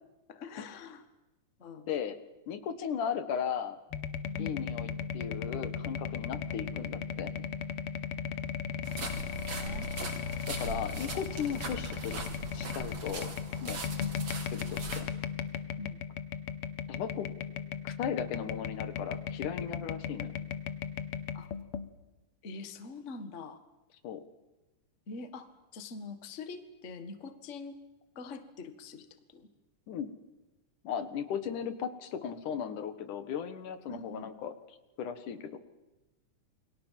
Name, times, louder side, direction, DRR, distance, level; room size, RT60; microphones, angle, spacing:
voice 1, 0.3-1.0 1.6-1.9 4.3-4.6 8.9-9.9 14.0-14.2 15.8-16.0 21.3-21.5 22.4-23.6 25.1-27.8 28.1-29.5 33.9-34.3, left 4 dB, 30° left, 9 dB, 1.6 m, -44 dB
voice 2, 2.5-3.8 4.4-7.4 10.5-12.2 12.5-13.3 13.6-13.8 14.5-15.1 16.9-17.3 17.8-20.3 24.0-24.2 29.9-30.1 30.8-34.5 35.0-35.6, left 7 dB, 80° left, 11 dB, 3.0 m, -36 dB
sound 1, 3.9-21.9, left 7 dB, 60° left, 1.8 m, -37 dB
sound 2, 8.8-15.0, right 4 dB, 55° right, 4.3 m, -41 dB
29.0 x 22.5 x 7.6 m, 1.1 s
omnidirectional pair, 3.6 m